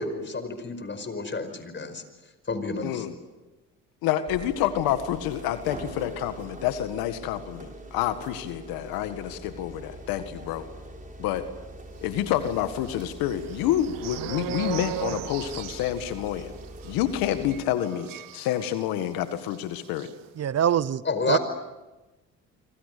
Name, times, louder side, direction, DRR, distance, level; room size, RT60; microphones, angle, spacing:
voice 1, 0.0-2.0 2.5-3.0 21.0-21.4, left 3 dB, 30° left, 10 dB, 5.1 m, -30 dB
voice 2, 2.8-3.1 4.0-10.6 11.2-11.4 12.0-16.5 16.8-20.1, left 11 dB, 80° left, 9 dB, 1.8 m, -28 dB
sound 1, 4.3-17.6, right 1 dB, 20° right, 5.8 m, -43 dB
sound 2, 12.4-19.1 19.4-19.6 19.8-20.1, right 14 dB, 65° right, 1.2 m, -38 dB
voice 3, 20.4-21.0 21.3-21.4, right 9 dB, 45° right, 19 dB, 0.8 m, -23 dB
26.5 x 25.5 x 6.9 m, 1.1 s
supercardioid pair, 70°, 35 cm